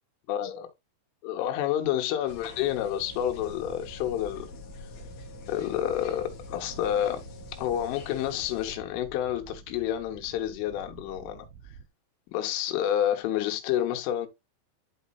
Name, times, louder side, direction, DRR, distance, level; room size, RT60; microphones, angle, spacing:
voice 1, 0.3-0.7 1.2-4.5 5.5-7.2 7.6-11.5 12.3-14.3, left 11 dB, 90° left, 3.5 m, -29 dB
sound 1, 2.3-8.8, left 4 dB, 60° left, 3.0 m, -45 dB
sound 2, 3.0-11.9, right 7 dB, 85° right, 3.2 m, -49 dB
12.0 x 4.1 x 2.4 m
omnidirectional pair, 5.5 m